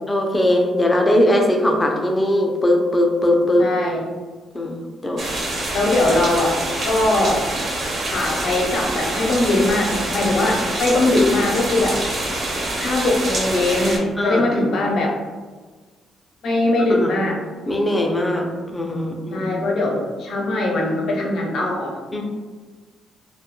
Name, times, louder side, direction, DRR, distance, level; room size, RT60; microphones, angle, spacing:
voice 1, 0.1-3.7 4.5-4.8 5.0-5.3 14.2-14.4 16.9-17.2 17.7-19.5 22.1-22.2, left 1 dB, 15° left, 2 dB, 0.4 m, -20 dB
voice 2, 3.6-4.1 5.7-6.6 6.8-7.4 8.1-12.2 12.8-15.2 16.4-17.4 19.3-22.0, left 2 dB, 70° left, -1 dB, 0.6 m, -20 dB
sound 1, 5.2-14.0, right 1 dB, 50° right, 0.7 m, -26 dB
2.2 x 2.1 x 2.9 m, 1.4 s
cardioid pair, 90°, 0 cm